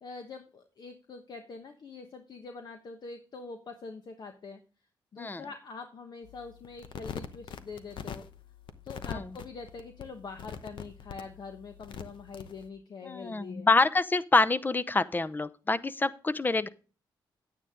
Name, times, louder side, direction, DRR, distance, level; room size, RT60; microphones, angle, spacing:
voice 1, 0.0-4.6 5.1-8.3 8.8-13.7, left 4 dB, 55° left, 5 dB, 1.2 m, -44 dB
sound 1, 6.2-12.7, left 7 dB, 75° left, 0.9 m, -44 dB
voice 2, 13.0-16.7, left 3 dB, 20° left, 16 dB, 0.7 m, -26 dB
9.6 x 9.1 x 3.7 m, 0.36 s
cardioid pair, 80°, 8 cm